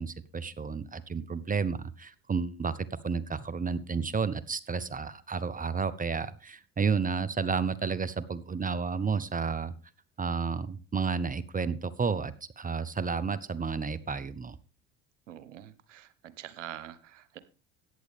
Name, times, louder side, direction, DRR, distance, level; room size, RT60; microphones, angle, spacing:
voice 1, 0.0-9.7 10.2-14.6, right 5 dB, 25° right, 18 dB, 0.8 m, -31 dB
voice 2, 15.3-17.4, right 11 dB, 85° right, 15 dB, 1.0 m, -45 dB
14.0 x 9.5 x 3.5 m, 0.35 s
hypercardioid pair, 65°, 36 cm